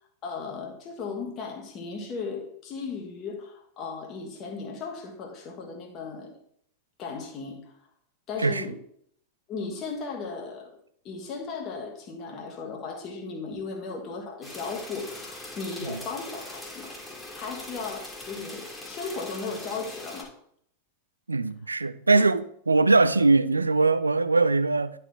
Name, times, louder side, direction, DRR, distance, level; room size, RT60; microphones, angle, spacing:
voice 1, 0.2-6.3 7.0-7.7 8.3-8.8 9.5-10.8 11.0-20.3 22.1-22.3, left 4 dB, 30° left, 1.7 m, -36 dB
sound 1, 14.4-20.2, left 1 dB, 10° left, 1.9 m, -41 dB
voice 2, 21.3-24.9, right 3 dB, 80° right, 0.4 m, -22 dB
11.0 x 4.4 x 3.9 m
figure-of-eight pair, 90°, 0 cm